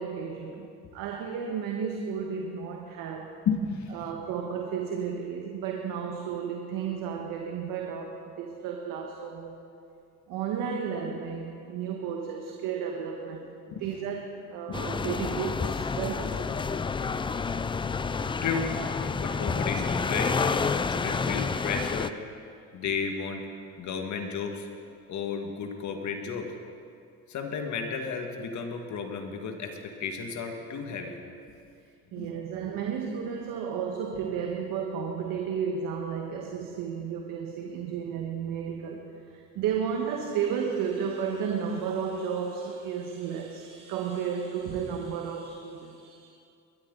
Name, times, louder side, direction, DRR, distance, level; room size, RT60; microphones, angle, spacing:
voice 1, 0.0-3.4 3.9-9.6 10.3-13.5 13.8-16.4 32.1-46.3, right 7 dB, 70° right, 2 dB, 1.5 m, -33 dB
voice 2, 3.5-4.1 13.7-13.8 14.7-14.9 17.2-17.3 18.4-18.7 19.2-20.6 20.9-22.2 22.7-23.5 23.8-24.7 25.1-26.5 27.3-31.2 32.2-32.3, left 5 dB, 55° left, 3 dB, 2.0 m, -33 dB
sound 1, 14.7-22.1, left 5 dB, 15° left, 0.4 m, -29 dB
21.5 x 13.0 x 4.0 m, 2.5 s
supercardioid pair, 100°, 35 cm